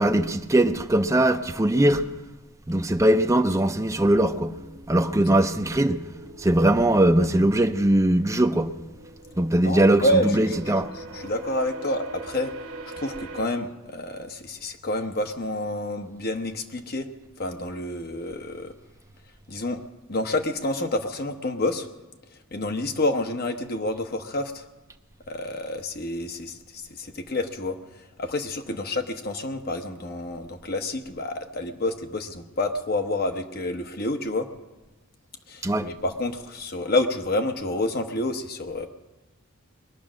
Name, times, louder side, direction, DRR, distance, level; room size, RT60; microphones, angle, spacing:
voice 1, 0.0-2.1 2.7-4.5 4.9-6.0 6.4-8.7 9.4-10.9 35.6-35.9, right 1 dB, 15° right, 0.6 m, -21 dB
sound 1, 4.0-13.5, right 2 dB, 85° right, 1.2 m, -43 dB
voice 2, 9.6-10.6 10.9-12.5 12.8-17.1 17.4-18.7 19.5-19.8 20.1-21.9 22.5-24.7 25.3-34.5 35.5-38.9, left 1 dB, 45° left, 1.1 m, -28 dB
22.0 x 8.5 x 6.3 m
head